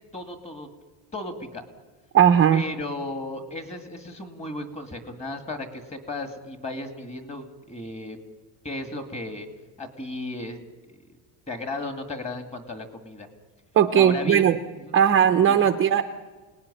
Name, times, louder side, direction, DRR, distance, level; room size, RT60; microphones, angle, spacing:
voice 1, 0.1-0.7 1.1-1.6 2.5-8.2 8.6-9.5 9.8-11.0 11.5-13.3 14.0-14.5 14.8-15.0 15.5-15.7, left 2 dB, 15° left, 6 dB, 2.2 m, -35 dB
voice 2, 2.1-2.6 13.8-14.6 14.9-16.0, right 9 dB, 25° right, 6 dB, 0.7 m, -18 dB
28.0 x 19.0 x 9.9 m, 1.4 s
cardioid pair, 170°, 46 cm